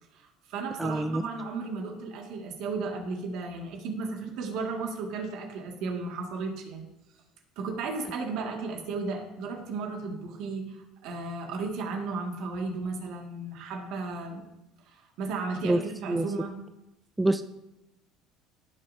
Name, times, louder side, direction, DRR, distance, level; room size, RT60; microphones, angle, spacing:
voice 1, 0.1-6.8 7.6-14.4 14.9-16.5, right 4 dB, 70° right, 2 dB, 2.0 m, -34 dB
voice 2, 0.8-1.2 15.6-15.8 16.1-16.3 17.2-17.4, right 1 dB, 10° right, 9 dB, 0.4 m, -25 dB
16.0 x 6.3 x 2.7 m, 0.90 s
supercardioid pair, 95°, 0 cm